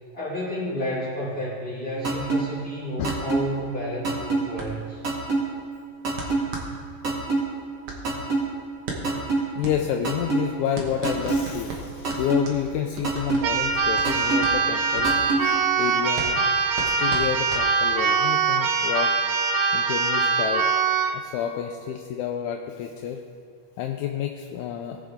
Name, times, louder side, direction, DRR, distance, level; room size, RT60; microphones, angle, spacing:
voice 1, 0.1-5.0, equal, 30° left, -10 dB, 2.5 m, -31 dB
sound 1, 2.0-2.4 3.0-3.4 4.0-4.4 5.0-5.4 6.0-6.4 7.0-7.4 8.0-8.4 9.0-9.4 10.0-10.4 11.0-11.4 12.0-12.4 13.0-13.4 14.0-14.4 15.0-15.4, right 3 dB, 40° right, 2.5 m, -23 dB
sound 2, 3.1-18.2, right 3 dB, 55° right, 2.0 m, -38 dB
voice 2, 9.6-16.4 16.8-19.1 19.7-20.7 21.1-23.2 23.8-25.0, left 9 dB, 80° left, 3 dB, 1.9 m, -29 dB
Keyboard (musical), 13.4-21.2, right 5 dB, 80° right, 1.3 m, -23 dB
18.0 x 6.2 x 3.5 m, 2.2 s
omnidirectional pair, 3.4 m